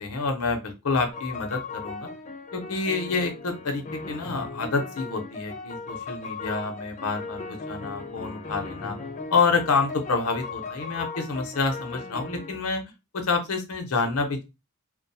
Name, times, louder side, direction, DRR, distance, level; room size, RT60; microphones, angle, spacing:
voice 1, 0.0-2.1 2.5-9.0 9.3-12.8 13.1-14.4, left 4 dB, 80° left, 4 dB, 0.7 m, -28 dB
sound 1, 1.1-12.7, left 4 dB, 35° left, 0.3 m, -37 dB
2.3 x 2.2 x 2.6 m, 0.25 s
head